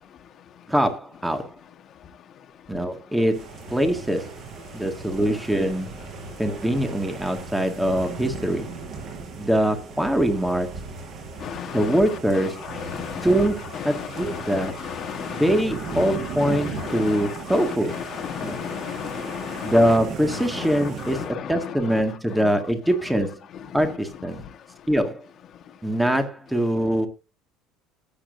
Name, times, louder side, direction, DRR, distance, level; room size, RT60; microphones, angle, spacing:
voice 1, 0.7-1.6 2.7-4.4 4.7-6.0 6.4-8.7 9.4-10.7 11.7-12.6 13.2-14.8 15.3-18.0 18.4-18.6 19.6-23.4 23.7-24.4 24.9-25.2 25.8-27.1, equal, 5° right, 1.9 m, -23 dB
sound 1, 3.3-21.3, right 4 dB, 40° right, 5.5 m, -37 dB
voice 2, 11.4-12.0 12.7-13.3 13.9-15.6 16.0-19.7 20.3-21.7, left 9 dB, 35° left, 1.5 m, -34 dB
18.0 x 8.7 x 2.7 m
cardioid pair, 155°, 0 cm